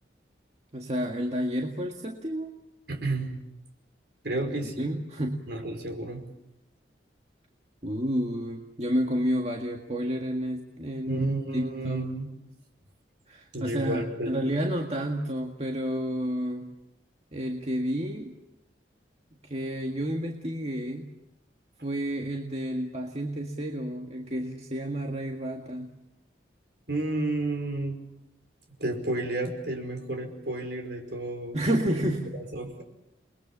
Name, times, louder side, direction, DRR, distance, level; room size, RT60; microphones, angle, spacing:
voice 1, 0.7-2.5 4.8-5.4 7.8-11.2 11.5-12.0 13.3-16.7 17.3-18.3 19.4-21.1 21.8-25.9 31.5-32.3, equal, 35° right, 1 dB, 1.9 m, -30 dB
voice 2, 2.9-3.4 4.2-4.9 5.5-6.2 11.1-12.3 13.5-14.4 26.9-28.0 28.8-31.6 32.3-32.8, right 2 dB, 60° right, 4 dB, 5.1 m, -31 dB
29.0 x 21.5 x 7.4 m, 0.88 s
head